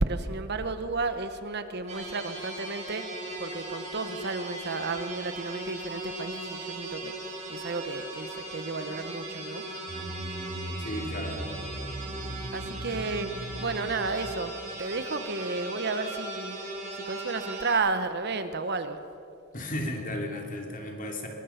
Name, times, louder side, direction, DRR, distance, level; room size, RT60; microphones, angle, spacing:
voice 1, 0.0-3.1 3.4-7.1 7.5-9.6 12.5-13.3 13.6-14.5 14.8-16.6 17.0-19.0, right 3 dB, 50° right, 10 dB, 1.0 m, -32 dB
sound 1, 1.9-17.7, right 2 dB, 30° right, 5.0 m, -38 dB
sound 2, 9.9-14.4, equal, 80° right, 7.0 m, -38 dB
voice 2, 10.8-11.5 19.5-21.3, left 1 dB, 40° left, 2 dB, 2.7 m, -34 dB
23.5 x 20.5 x 5.8 m, 2.7 s
head